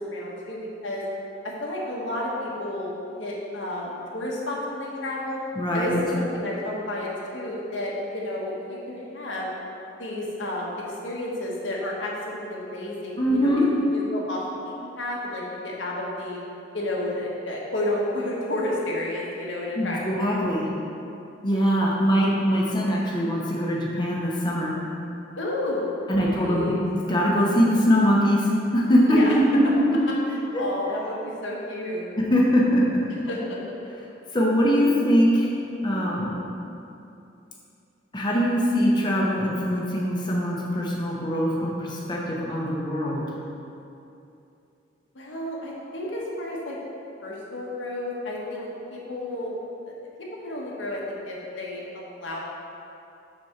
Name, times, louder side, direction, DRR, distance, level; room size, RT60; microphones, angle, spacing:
voice 1, 0.1-1.0 1.6-5.4 5.7-9.5 10.0-10.7 11.0-13.6 13.9-16.4 16.7-20.3 25.4-26.8 29.1-29.3 30.3-32.1 33.3-33.6 45.1-46.8 47.2-49.6 49.8-49.9 50.4-52.4, left 1 dB, 80° left, -4 dB, 1.3 m, -31 dB
voice 2, 5.5-6.0 13.2-13.7 19.8-20.7 21.4-24.7 26.1-30.0 30.5-30.6 32.3-33.0 34.3-35.5 35.8-36.4 38.1-43.2, equal, 25° left, -4 dB, 1.0 m, -22 dB
6.1 x 4.3 x 5.9 m, 2.7 s
head